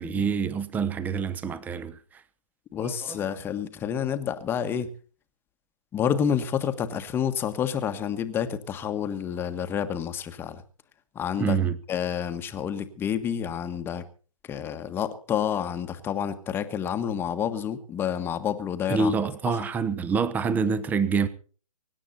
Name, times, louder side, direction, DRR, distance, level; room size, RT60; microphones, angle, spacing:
voice 1, 0.0-2.2 2.8-3.2 11.4-11.8 18.9-21.3, right 5 dB, 10° right, 1.0 m, -26 dB
voice 2, 2.7-4.9 5.9-10.6 11.1-11.6 11.9-14.0 14.5-19.1 19.5-19.6, left 8 dB, 10° left, 1.4 m, -29 dB
24.5 x 11.5 x 4.2 m
hypercardioid pair, 150°, 19 cm